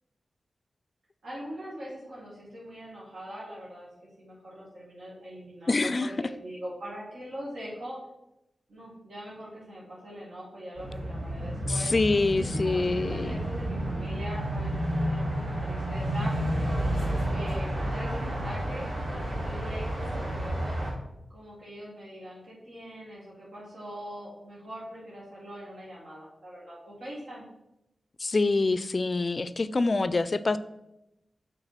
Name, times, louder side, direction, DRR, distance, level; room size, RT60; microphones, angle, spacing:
voice 1, 1.2-3.9 4.2-8.0 8.7-11.9 12.3-16.3 17.3-20.8 21.3-27.4, equal, 90° right, -7 dB, 1.9 m, -42 dB
voice 2, 5.7-6.1 11.7-13.4 28.2-30.6, left 3 dB, 45° left, 15 dB, 0.3 m, -26 dB
sound 1, 10.8-20.9, right 1 dB, 60° right, 2.6 m, -31 dB
5.8 x 3.6 x 5.7 m, 0.88 s
cardioid pair, 60°, 0 cm